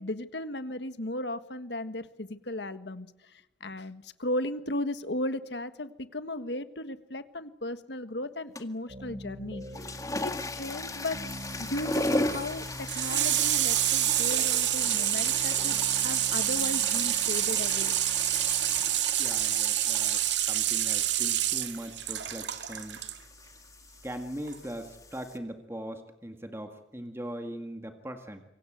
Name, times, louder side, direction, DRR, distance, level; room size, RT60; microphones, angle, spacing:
voice 1, 0.0-3.1 3.6-9.6 10.2-11.2 11.6-18.0, left 1 dB, 70° left, 11 dB, 1.6 m, -35 dB
sound 1, 8.6-8.9 9.6-25.4, left 2 dB, 20° left, 2.0 m, -38 dB
sound 2, 8.9-18.8, equal, 40° right, 3.4 m, -45 dB
Water tap faucet / Sink (filling or washing), 11.3-23.2 24.5-24.6, right 12 dB, 90° right, 1.9 m, -28 dB
voice 2, 19.2-23.0 24.0-28.4, right 1 dB, 15° right, 6 dB, 1.9 m, -40 dB
27.0 x 24.5 x 7.9 m, 0.86 s
head